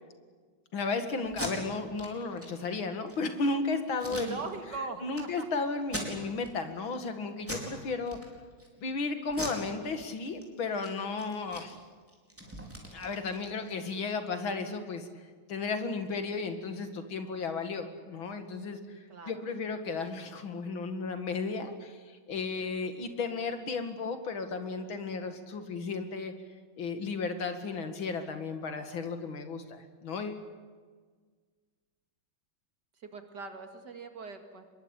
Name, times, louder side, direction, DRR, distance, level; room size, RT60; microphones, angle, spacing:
voice 1, 0.7-4.4 5.0-8.2 8.8-11.8 12.9-15.2 15.5-26.3 26.8-30.5, left 4 dB, 80° left, 7 dB, 2.8 m, -34 dB
Packing tape duct tape, 1.2-1.5 2.0-2.1 2.4-2.5 2.9-3.3 4.0-4.8 5.1-5.2 5.8-6.5 6.9-7.1 7.4-7.7 8.0-8.7 9.3-10.4 10.7-10.9 11.2-13.8, right 1 dB, 5° right, 4.7 m, -40 dB
voice 2, 4.1-5.5 19.1-19.3 33.0-34.7, right 4 dB, 55° right, 6 dB, 2.7 m, -40 dB
25.5 x 22.0 x 8.9 m, 1.5 s
omnidirectional pair, 2.2 m